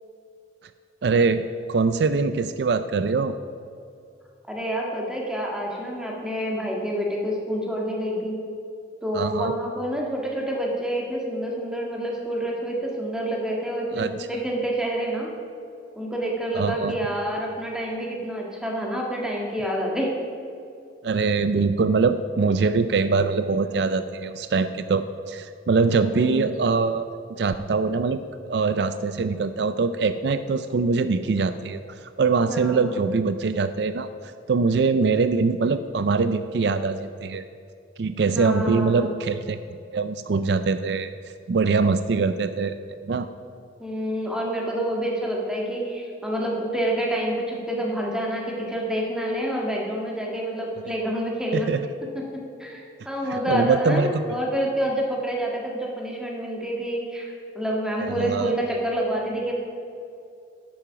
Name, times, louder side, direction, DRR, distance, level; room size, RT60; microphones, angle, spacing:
voice 1, 1.0-3.3 9.1-9.5 13.9-14.1 16.5-17.0 21.0-27.0 27.4-28.2 28.5-37.4 38.0-39.6 39.9-41.1 41.5-42.7 43.0-43.3 51.5-51.8 53.2-54.2 58.0-58.6, right 4 dB, 65° right, 11 dB, 0.4 m, -23 dB
voice 2, 4.5-8.4 9.0-15.3 15.9-20.1 25.9-26.5 32.5-33.0 38.3-39.1 43.8-51.7 52.6-59.5, equal, 5° right, -2 dB, 1.8 m, -28 dB
10.5 x 8.6 x 5.9 m, 2.5 s
head